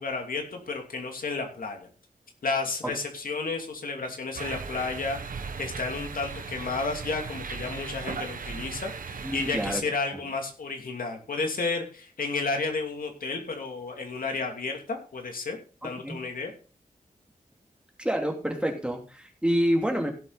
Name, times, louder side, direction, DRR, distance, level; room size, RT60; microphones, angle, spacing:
voice 1, 0.0-1.9 2.4-5.2 5.6-16.5, left 3 dB, 90° left, 3 dB, 2.8 m, -32 dB
sound 1, 4.3-9.7, right 5 dB, 75° right, 1.2 m, -37 dB
voice 2, 9.2-9.8 10.1-10.2 15.8-16.2 18.0-20.1, equal, 5° right, 2 dB, 2.7 m, -28 dB
16.5 x 7.7 x 4.1 m, 0.37 s
wide cardioid pair, 115°, 14 cm